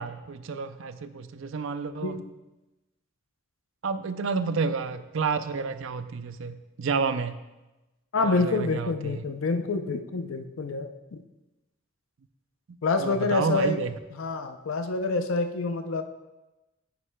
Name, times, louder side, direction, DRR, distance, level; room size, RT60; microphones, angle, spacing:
voice 1, 0.0-2.2 3.8-7.4 8.2-9.2 13.0-13.9, right 4 dB, 65° right, 11 dB, 0.4 m, -30 dB
voice 2, 2.0-2.3 8.1-11.2 12.8-13.8 14.1-16.0, left 3 dB, 70° left, 8 dB, 0.5 m, -27 dB
9.9 x 9.5 x 2.2 m, 1.0 s
head